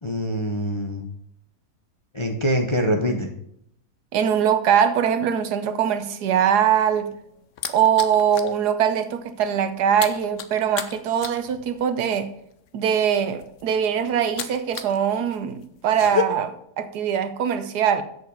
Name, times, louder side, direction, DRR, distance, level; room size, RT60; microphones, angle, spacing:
voice 1, 0.0-1.1 2.1-3.3, equal, 25° left, 2 dB, 0.6 m, -24 dB
voice 2, 4.1-7.1 7.7-12.3 12.7-18.0, right 8 dB, 80° right, 10 dB, 1.4 m, -22 dB
sound 1, 6.8-8.6 8.9-9.2 9.4-15.0 15.3-16.2, left 8 dB, 60° left, 0.9 m, -32 dB
7.9 x 6.6 x 5.3 m, 0.72 s
omnidirectional pair, 1.7 m